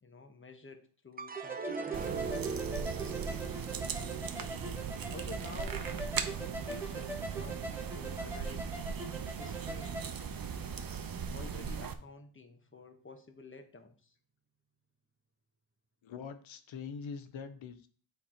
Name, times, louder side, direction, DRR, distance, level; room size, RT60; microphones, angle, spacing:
voice 1, 0.0-3.7 5.1-8.7 9.4-10.0 11.3-14.1, left 3 dB, 25° left, 7 dB, 1.0 m, -51 dB
sound 1, 1.2-7.6 8.1-8.7, right 5 dB, 20° right, 0.5 m, -43 dB
sound 2, 1.4-10.1, right 2 dB, 5° right, 1.2 m, -43 dB
sound 3, 1.9-11.9, right 6 dB, 50° right, 0.8 m, -38 dB
voice 2, 16.0-17.9, left 6 dB, 85° left, 10 dB, 0.9 m, -43 dB
8.6 x 3.3 x 4.3 m, 0.42 s
cardioid pair, 85°, 45 cm